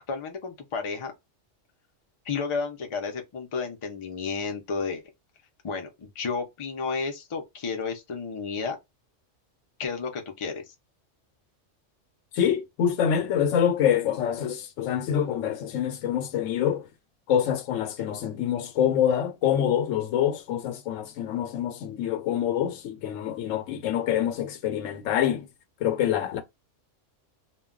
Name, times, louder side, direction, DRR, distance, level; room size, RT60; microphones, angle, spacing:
voice 1, 0.1-1.1 2.3-5.0 5.6-8.8 9.8-10.6, left 5 dB, 45° left, 0.4 m, -32 dB
voice 2, 12.3-16.9 17.3-25.5 25.8-26.4, left 9 dB, 85° left, 0.9 m, -26 dB
2.2 x 2.2 x 3.6 m
omnidirectional pair, 1.3 m